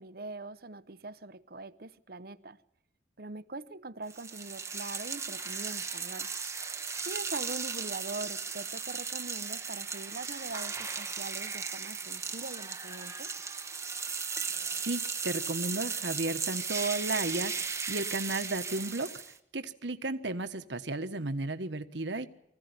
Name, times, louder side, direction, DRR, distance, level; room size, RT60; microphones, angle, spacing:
voice 1, 0.0-2.6 3.2-6.3 7.1-13.3, right 3 dB, 50° right, 0.8 m, -42 dB
sound 1, 4.1-19.4, right 5 dB, 15° right, 1.1 m, -36 dB
voice 2, 14.8-19.1 19.5-22.3, right 2 dB, 70° right, 1.4 m, -34 dB
24.5 x 15.5 x 9.7 m
head